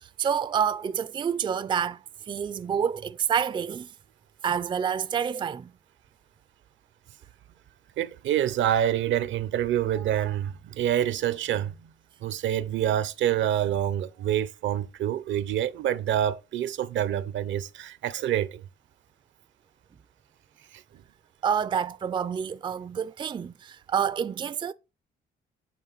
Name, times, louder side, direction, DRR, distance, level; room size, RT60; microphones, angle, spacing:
voice 1, 0.0-2.0 2.3-3.9 4.4-5.7 21.4-24.7, right 7 dB, 25° right, 0.3 m, -28 dB
voice 2, 8.0-11.7 12.2-18.6 20.7-20.8, right 11 dB, 70° right, 0.6 m, -27 dB
8.4 x 3.7 x 3.9 m
cardioid pair, 90°, 20 cm